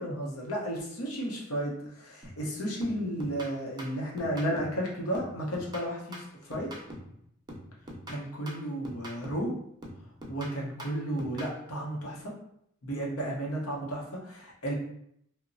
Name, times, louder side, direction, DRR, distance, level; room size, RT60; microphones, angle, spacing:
voice 1, 0.0-6.7 8.1-9.5 10.3-12.3 12.8-14.7, right 1 dB, 90° left, -2 dB, 0.8 m, -33 dB
sound 1, 2.2-2.5 2.8-4.8 5.1-7.2 7.5-9.5 9.8-11.6, equal, 20° right, 0.5 m, -44 dB
2.9 x 2.1 x 2.6 m, 0.72 s
head